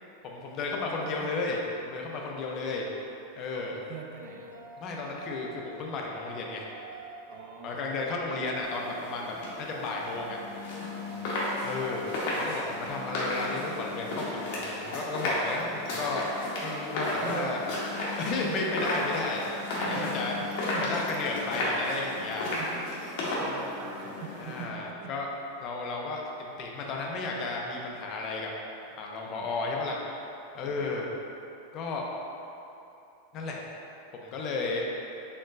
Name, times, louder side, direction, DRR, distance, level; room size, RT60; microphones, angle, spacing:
voice 1, 0.2-2.9 3.4-3.7 4.8-6.7 7.6-10.4 11.6-16.3 16.6-17.6 18.2-19.4 19.8-20.4 20.8-22.6 24.4-25.3 25.6-28.5 28.9-30.0 30.5-31.1 31.7-32.0 33.3-33.6 34.1-34.8, left 3 dB, 40° left, -1 dB, 0.5 m, -33 dB
voice 2, 1.0-1.5 3.5-4.6 7.3-7.9 11.1-11.4 17.2-17.7 18.4-19.0 19.6-21.1 21.5-21.7 22.2-25.2 29.3-29.5 30.6-30.9, right 6 dB, 55° right, 2 dB, 0.4 m, -43 dB
sound 1, 4.1-16.9, right 3 dB, 85° left, 0.5 m, -47 dB
sound 2, 8.6-24.6, left 1 dB, 65° left, 0.9 m, -34 dB
4.4 x 3.0 x 2.5 m, 2.8 s
supercardioid pair, 130°, 0 cm